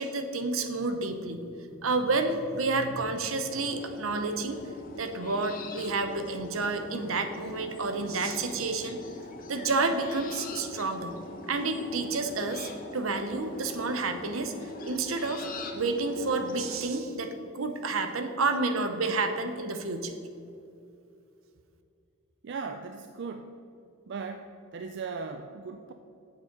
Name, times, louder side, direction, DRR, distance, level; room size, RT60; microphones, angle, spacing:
voice 1, 0.0-1.4 1.8-4.6 5.0-9.0 9.5-11.2 11.5-15.4 15.7-20.2, right 3 dB, 75° right, 8 dB, 0.8 m, -30 dB
sound 1, 3.5-16.8, left 2 dB, 40° left, 0.9 m, -42 dB
voice 2, 22.4-23.5 24.1-24.5 24.7-25.9, right 5 dB, 55° right, 7 dB, 0.4 m, -37 dB
8.1 x 6.9 x 5.3 m, 2.6 s
head